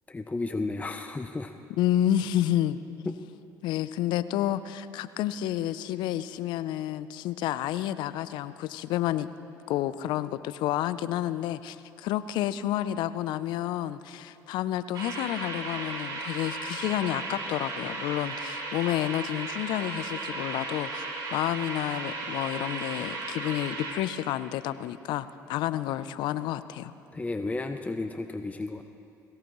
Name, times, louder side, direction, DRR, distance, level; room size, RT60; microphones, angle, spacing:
voice 1, 0.1-1.5 3.1-3.2 27.1-28.8, left 3 dB, 20° left, 7 dB, 0.7 m, -33 dB
voice 2, 1.8-2.8 3.6-9.3 9.7-21.0 21.3-26.9, left 12 dB, 70° left, 15 dB, 0.5 m, -30 dB
sound 1, 14.9-23.9, right 3 dB, 60° right, 4.2 m, -35 dB
21.5 x 16.5 x 3.1 m, 2.6 s
supercardioid pair, 70°, 8 cm